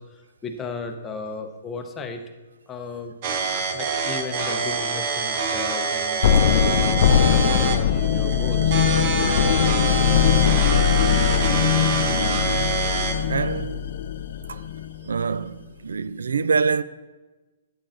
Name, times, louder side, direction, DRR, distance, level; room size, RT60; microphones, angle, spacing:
voice 1, 0.0-2.2 2.7-3.1 3.7-8.9, left 4 dB, 15° left, 0.9 m, -36 dB
sound 1, 3.2-13.2, right 5 dB, 45° right, 1.0 m, -26 dB
sound 2, 6.2-15.1, left 9 dB, 60° left, 0.4 m, -21 dB
voice 2, 13.3-13.9 14.5-14.6 15.0-16.8, right 5 dB, 85° right, 0.3 m, -25 dB
11.0 x 8.9 x 2.6 m
hypercardioid pair, 140°, 0 cm